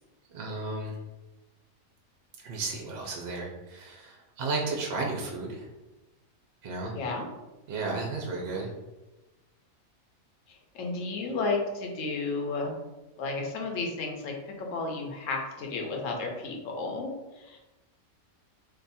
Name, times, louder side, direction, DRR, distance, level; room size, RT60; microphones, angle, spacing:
voice 1, 0.3-1.0 2.4-5.7 6.6-7.0 7.7-8.7, right 3 dB, 60° right, 0 dB, 0.7 m, -33 dB
voice 2, 6.9-7.3 10.5-12.7 13.2-17.6, left 3 dB, 65° left, 1 dB, 1.0 m, -33 dB
2.6 x 2.4 x 4.0 m, 1.1 s
omnidirectional pair, 1.5 m